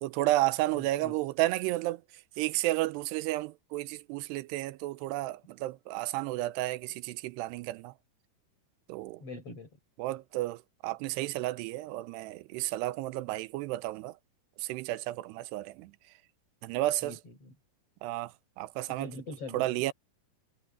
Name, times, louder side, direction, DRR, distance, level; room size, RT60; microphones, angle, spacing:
voice 1, 0.0-2.0 2.4-7.9 8.9-9.2 10.0-14.2 14.6-15.9 16.6-17.2 18.0-19.1 19.5-19.9, right 17 dB, 80° right, 2.8 m, -32 dB
voice 2, 0.7-1.2 9.2-9.7 17.0-17.5 18.9-19.8, left 2 dB, 35° left, 6.1 m, -43 dB
omnidirectional pair, 4.8 m